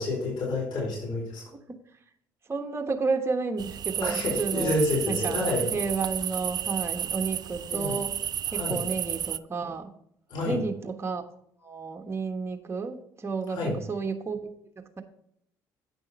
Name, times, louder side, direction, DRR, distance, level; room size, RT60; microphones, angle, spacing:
voice 1, 0.0-1.4 4.0-5.7 7.7-8.0 8.5-8.8 10.3-10.6 13.5-13.8, left 2 dB, 55° left, -4 dB, 4.2 m, -29 dB
voice 2, 2.5-4.8 5.0-5.4 5.7-8.1 8.5-9.9 10.4-11.2 11.6-14.5 14.8-15.0, right 4 dB, 30° right, 4 dB, 1.2 m, -31 dB
sound 1, 3.6-9.4, right 9 dB, 45° right, 0.4 m, -32 dB
9.1 x 6.2 x 4.3 m, 0.69 s
hypercardioid pair, 60°, 9 cm